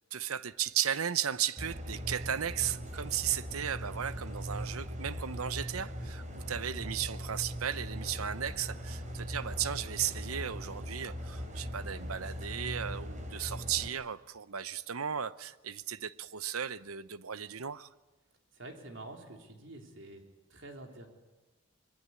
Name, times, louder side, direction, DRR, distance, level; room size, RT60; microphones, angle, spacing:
voice 1, 0.1-17.9, right 9 dB, 90° right, 0.9 m, -35 dB
sound 1, 1.6-13.9, equal, 35° right, 3.5 m, -40 dB
sound 2, 5.0-10.8, right 2 dB, 45° left, 3.5 m, -56 dB
voice 2, 18.5-20.2 20.5-21.1, right 2 dB, 60° right, 3.8 m, -47 dB
25.0 x 22.0 x 9.8 m
head